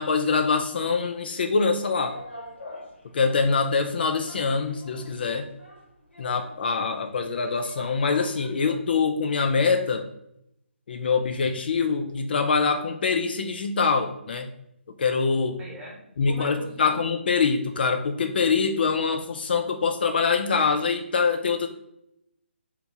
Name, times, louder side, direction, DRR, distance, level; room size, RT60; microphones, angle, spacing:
voice 1, 0.0-2.1 3.1-5.5 6.2-10.0 10.9-14.5 15.0-15.6 16.2-21.7, left 5 dB, 55° left, 5 dB, 0.4 m, -24 dB
sound 1, 2.0-8.7, left 1 dB, 75° left, 1.1 m, -44 dB
voice 2, 15.6-17.1, right 1 dB, 10° right, -4 dB, 1.0 m, -41 dB
3.0 x 2.8 x 3.5 m, 0.78 s
figure-of-eight pair, 150°, 7 cm